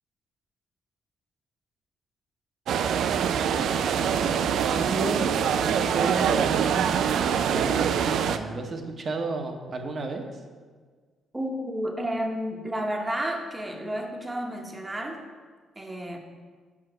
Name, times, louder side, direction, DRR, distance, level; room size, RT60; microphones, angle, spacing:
sound 1, 2.7-8.4, right 8 dB, 75° right, 0.3 m, -24 dB
voice 1, 3.5-4.4 4.7-5.3 5.6-10.3, right 3 dB, 45° right, 4 dB, 0.9 m, -32 dB
voice 2, 11.3-15.2 15.8-16.2, equal, 15° right, 2 dB, 1.0 m, -31 dB
5.7 x 4.8 x 6.1 m, 1.5 s
cardioid pair, 90°, 0 cm